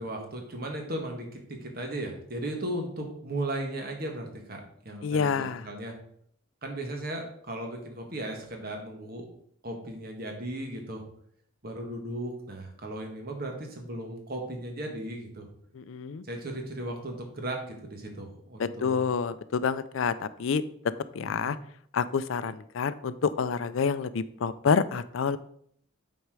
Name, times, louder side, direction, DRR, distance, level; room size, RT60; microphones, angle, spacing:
voice 1, 0.0-5.9 6.6-9.3 9.6-11.0 11.6-15.5 16.3-19.0 21.2-21.6, right 1 dB, 45° right, 2 dB, 1.5 m, -36 dB
voice 2, 5.0-5.6 15.7-16.2 18.6-20.1 20.4-20.6 21.1-21.6 21.9-25.4, left 6 dB, 75° left, 14 dB, 0.4 m, -28 dB
8.1 x 4.3 x 4.8 m, 0.66 s
head